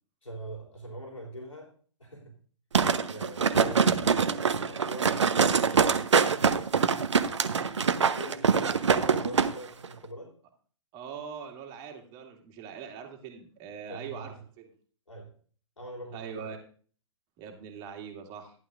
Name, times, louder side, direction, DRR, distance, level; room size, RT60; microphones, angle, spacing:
voice 1, 0.2-1.7 2.0-2.4 3.1-6.0 7.2-10.3 13.9-14.4 15.1-15.3 15.8-16.5, right 1 dB, 80° left, 0 dB, 3.6 m, -43 dB
sound 1, 2.7-9.5 9.8-9.9, right 6 dB, 65° right, 1.0 m, -24 dB
voice 2, 10.9-14.7 16.1-16.6 17.4-18.5, right 7 dB, 25° right, 3 dB, 2.2 m, -42 dB
15.0 x 11.0 x 2.6 m, 0.44 s
figure-of-eight pair, 120°, 16 cm